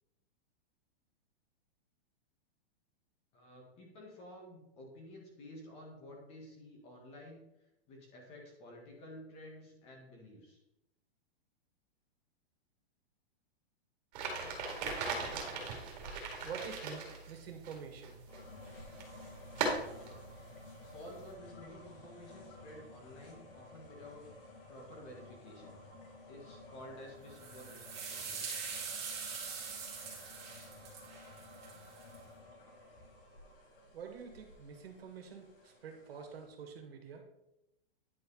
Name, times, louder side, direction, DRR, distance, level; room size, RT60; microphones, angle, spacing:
voice 1, 3.3-7.4 7.9-10.6 20.2-20.3 20.8-24.3 24.7-25.8 26.3-28.4, left 1 dB, 20° left, 0 dB, 1.6 m, -52 dB
sound 1, 14.1-21.3, right 4 dB, 45° right, 2.1 m, -40 dB
voice 2, 16.4-18.2 33.9-37.2, right 6 dB, 75° right, 3 dB, 1.9 m, -47 dB
sound 2, 18.3-36.5, left 2 dB, 60° left, 2.7 m, -54 dB
sound 3, 27.3-32.2, right 5 dB, 20° right, 2.0 m, -43 dB
10.0 x 4.7 x 4.1 m, 0.89 s
supercardioid pair, 175°, 30 cm